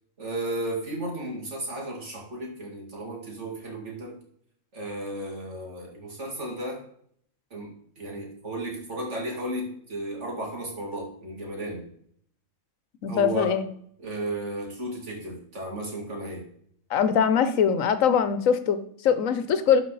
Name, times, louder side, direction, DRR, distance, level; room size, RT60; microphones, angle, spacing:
voice 1, 0.2-4.2 4.7-6.8 7.5-7.7 8.0-11.9 13.1-13.5 14.0-16.5, right 1 dB, 60° right, -1 dB, 2.7 m, -34 dB
voice 2, 13.0-13.7 16.9-19.8, left 7 dB, 85° left, 11 dB, 1.2 m, -22 dB
12.0 x 5.0 x 4.0 m, 0.63 s
omnidirectional pair, 1.3 m